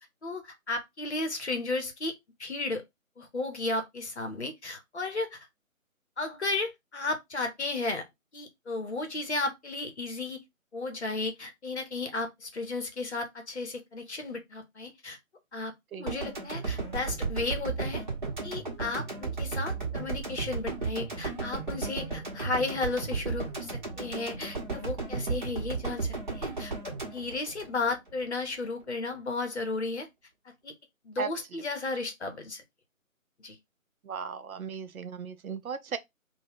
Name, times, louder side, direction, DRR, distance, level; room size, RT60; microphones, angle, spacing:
voice 1, 0.2-2.1 2.4-2.8 3.2-5.5 6.2-8.0 8.3-10.4 10.7-15.2 15.5-15.7 16.0-18.0 18.4-30.1 30.6-30.7 31.0-32.6 33.4-33.6, left 3 dB, 55° left, 0.7 m, -34 dB
sound 1, 16.1-28.3, right 4 dB, 35° right, 0.9 m, -34 dB
voice 2, 34.0-36.0, right 6 dB, 85° right, 0.5 m, -36 dB
2.2 x 2.1 x 3.4 m
figure-of-eight pair, 150°, 42 cm